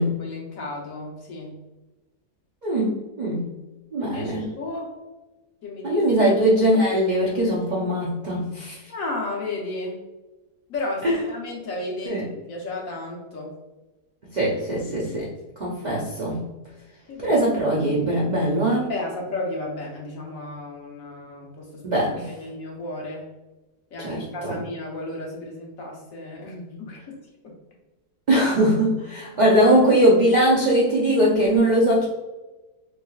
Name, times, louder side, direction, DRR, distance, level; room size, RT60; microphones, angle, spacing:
voice 1, 0.2-1.6 4.0-5.0 5.6-6.0 8.9-10.0 10.7-12.2 12.5-13.5 17.1-17.4 18.9-23.3 23.9-27.2, left 2 dB, 60° left, -2 dB, 1.1 m, -33 dB
voice 2, 2.6-3.5 3.9-4.4 5.8-8.8 11.0-11.1 12.0-12.3 14.3-15.3 15.6-16.4 17.2-18.9 21.8-22.3 24.0-24.6 28.3-32.1, right 1 dB, 60° right, -5 dB, 0.4 m, -21 dB
3.5 x 3.1 x 2.3 m, 1.1 s
omnidirectional pair, 1.7 m